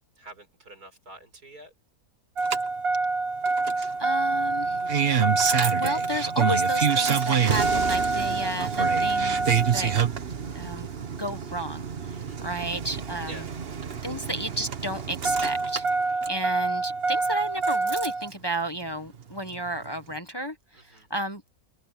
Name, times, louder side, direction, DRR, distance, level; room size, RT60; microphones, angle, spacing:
voice 1, 0.0-1.7 12.1-12.4 13.2-13.5 20.7-21.1, right 1 dB, 90° right, 6.7 m, -47 dB
Engine starting, 2.4-18.3 19.5-19.6, right 4 dB, 45° right, 1.3 m, -26 dB
voice 2, 4.0-4.8 5.4-9.9 10.5-10.9 11.2-11.9 12.4-13.3 14.0-15.8 16.3-20.5 20.9-21.4, right 1 dB, 15° left, 1.5 m, -32 dB
omnidirectional pair, 1.6 m